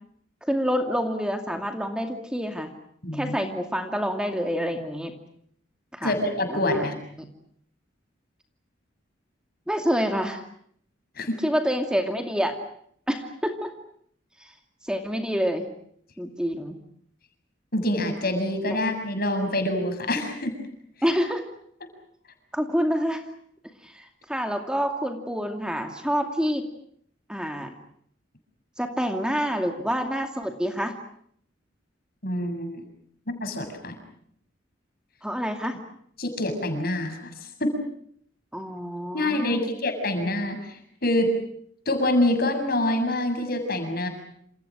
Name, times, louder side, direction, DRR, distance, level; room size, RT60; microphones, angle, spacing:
voice 1, 0.4-2.7 3.1-5.2 5.9-6.1 6.5-6.9 7.1-7.3 9.7-10.4 11.4-12.6 13.1-13.7 14.4-14.5 14.8-15.7 16.2-16.8 18.7-18.8 21.0-21.4 22.5-23.2 23.8-26.7 27.3-27.7 28.8-30.9 35.2-35.8 38.5-39.7, equal, 5° right, 5 dB, 2.4 m, -27 dB
voice 2, 3.0-3.4 6.0-6.9 11.2-11.4 17.7-20.5 32.2-32.8 33.3-34.0 36.2-37.7 39.1-41.3 41.9-44.1, left 1 dB, 50° left, 7 dB, 7.4 m, -26 dB
29.0 x 28.5 x 6.3 m, 0.67 s
head